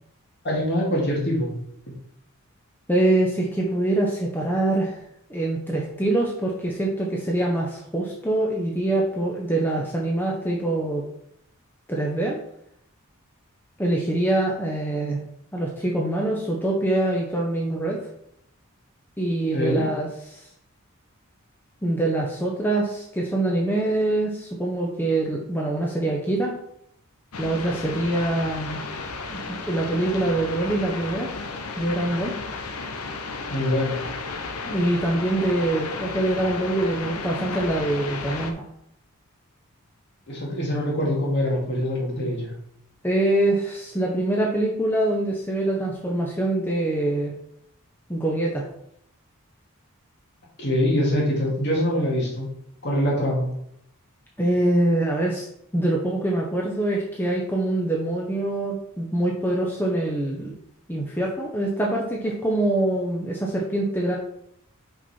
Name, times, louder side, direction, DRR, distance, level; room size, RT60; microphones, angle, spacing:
voice 1, 0.4-1.6 1.9-2.0 19.5-19.9 33.5-34.0 40.3-42.5 50.6-52.5 52.8-53.5, equal, 50° left, -2 dB, 2.2 m, -24 dB
voice 2, 2.9-5.0 5.3-11.0 11.9-12.4 13.8-15.2 15.5-18.0 19.2-20.5 21.8-26.6 27.4-28.8 29.3-31.3 31.8-32.3 34.7-38.7 43.0-47.3 48.1-48.7 54.4-55.5 55.7-60.5 60.9-64.1, right 1 dB, 10° left, -2 dB, 0.8 m, -24 dB
sound 1, 27.3-38.5, left 4 dB, 85° left, 0.8 m, -33 dB
5.7 x 5.4 x 4.3 m, 0.74 s
head